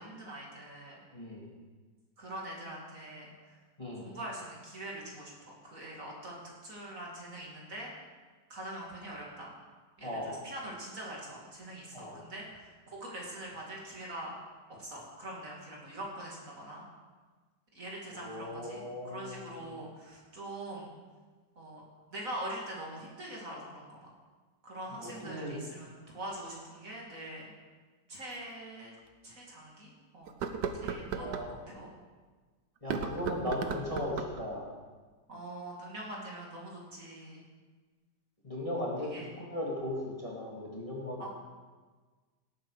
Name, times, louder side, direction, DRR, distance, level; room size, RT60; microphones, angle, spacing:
voice 1, 0.0-1.0 2.2-3.6 4.0-5.3 5.6-7.9 8.5-9.6 10.0-14.3 14.8-16.8 17.7-20.9 21.6-21.8 22.1-24.1 24.6-27.5 28.1-28.9 29.2-30.4 30.7-31.9 35.3-37.4 39.1-39.3 41.2-41.3, right 1 dB, 50° right, -3 dB, 3.0 m, -43 dB
voice 2, 1.1-1.5 3.8-4.1 10.0-10.4 11.9-12.2 18.1-19.6 25.0-25.6 31.1-31.6 32.8-34.7 38.4-41.3, left 1 dB, 20° left, -4 dB, 2.3 m, -37 dB
sound 1, 28.3-28.4 29.0-29.1 30.3-31.5 32.8-34.4, right 6 dB, 80° right, 1.5 m, -36 dB
18.0 x 9.2 x 4.9 m, 1.4 s
omnidirectional pair, 1.9 m